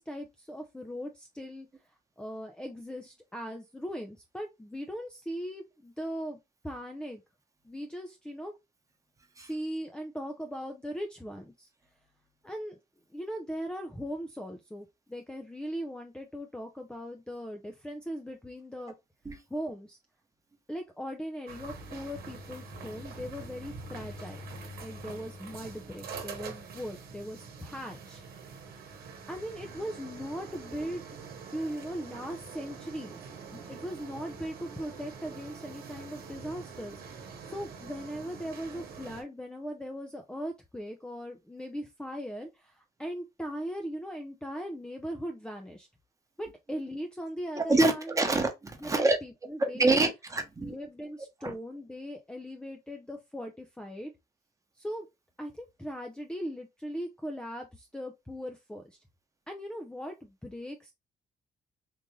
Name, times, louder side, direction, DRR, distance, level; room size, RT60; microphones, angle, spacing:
voice 1, 0.0-1.7 2.2-6.4 6.6-7.2 7.6-8.5 9.4-11.7 12.4-12.8 13.1-18.9 19.5-20.0 20.7-24.4 24.8-28.5 29.3-31.0 31.5-33.2 33.5-45.9 46.4-48.4 48.8-50.0 50.6-54.1 54.8-55.1 55.4-59.0 59.5-60.9, equal, 5° left, 0.5 m, -39 dB
sound 1, 21.5-39.2, right 4 dB, 80° right, 1.1 m, -45 dB
voice 2, 47.6-49.2 49.6-50.7 51.4-51.5, right 2 dB, 20° right, 1.0 m, -26 dB
3.8 x 2.5 x 3.1 m
cardioid pair, 110°, 15 cm